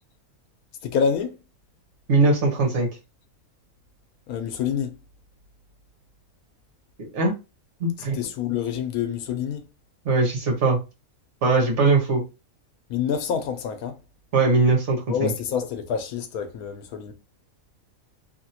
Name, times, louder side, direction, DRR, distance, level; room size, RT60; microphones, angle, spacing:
voice 1, 0.8-1.4 4.3-5.0 8.1-9.6 12.9-14.0 15.1-17.1, left 7 dB, 90° left, 1.1 m, -27 dB
voice 2, 2.1-2.9 7.0-7.3 7.8-8.2 10.0-10.8 11.4-12.2 14.3-15.3, right 3 dB, 55° right, 1.4 m, -20 dB
2.9 x 2.8 x 2.7 m
omnidirectional pair, 1.5 m